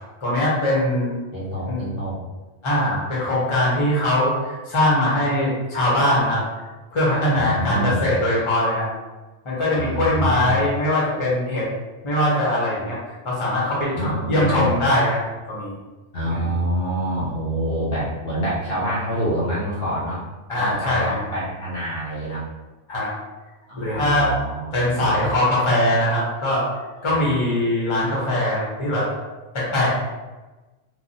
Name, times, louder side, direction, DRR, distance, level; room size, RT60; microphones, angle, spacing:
voice 1, 0.2-1.1 1.7-1.8 2.6-6.4 6.9-8.9 9.4-11.7 12.0-13.0 13.2-15.8 16.3-16.5 20.5-21.2 22.9-23.1 23.8-24.3 24.7-26.7 27.0-29.1 29.5-30.1, left 1 dB, 30° left, -6 dB, 0.8 m, -21 dB
voice 2, 1.3-2.2 7.3-8.1 9.7-10.5 13.9-14.7 16.1-20.2 20.5-22.5 23.7-25.4 27.1-27.2, right 1 dB, 60° left, -7 dB, 1.0 m, -26 dB
3.2 x 2.2 x 2.6 m, 1.2 s
omnidirectional pair, 1.2 m